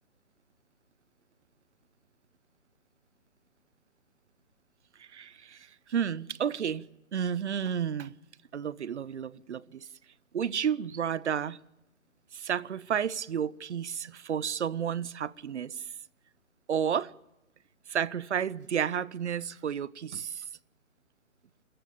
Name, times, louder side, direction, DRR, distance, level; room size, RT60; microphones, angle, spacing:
voice 1, 5.0-8.1 8.5-9.9 10.3-11.6 12.3-15.8 16.7-17.1 17.9-20.4, right 8 dB, 55° right, 0.7 m, -31 dB
28.5 x 14.5 x 7.2 m
hypercardioid pair, 160°, 42 cm